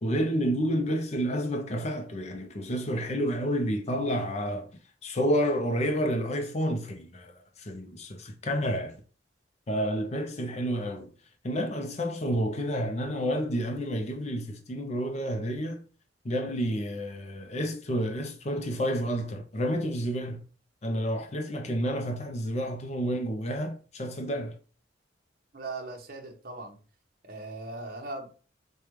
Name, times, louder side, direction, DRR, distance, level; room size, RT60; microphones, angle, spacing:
voice 1, 0.0-4.7 5.0-9.0 9.7-11.1 11.4-15.8 16.2-20.5 20.8-24.6, equal, 35° left, 0.5 m, -30 dB
voice 2, 25.5-26.8 27.2-28.3, right 2 dB, 55° right, 0.9 m, -39 dB
5.0 x 2.3 x 3.0 m
head